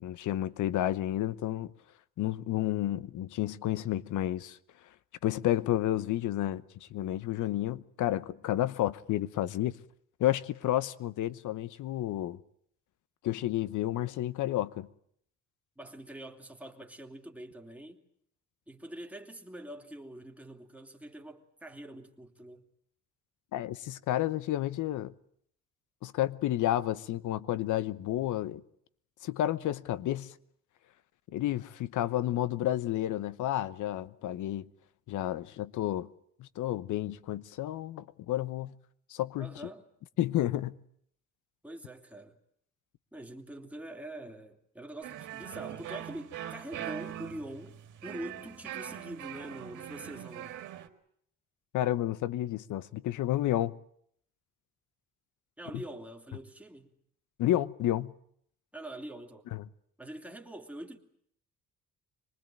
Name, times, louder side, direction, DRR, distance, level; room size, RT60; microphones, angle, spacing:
voice 1, 0.0-1.7 2.2-4.6 5.2-9.8 10.2-12.4 13.2-14.9 23.5-25.1 26.0-28.6 29.2-30.3 31.3-34.6 35.1-36.1 36.4-38.7 39.1-39.5 40.2-40.8 51.7-53.8 57.4-58.1 59.5-59.6, left 13 dB, 80° left, 1.0 m, -31 dB
voice 2, 15.8-18.0 18.7-22.7 39.4-39.9 41.6-42.4 43.1-50.6 55.6-56.9 58.7-59.5 60.0-61.0, right 1 dB, 5° right, 2.9 m, -44 dB
sound 1, 45.0-50.9, right 12 dB, 85° right, 2.0 m, -42 dB
25.5 x 20.0 x 9.0 m
cardioid pair, 90°, 30 cm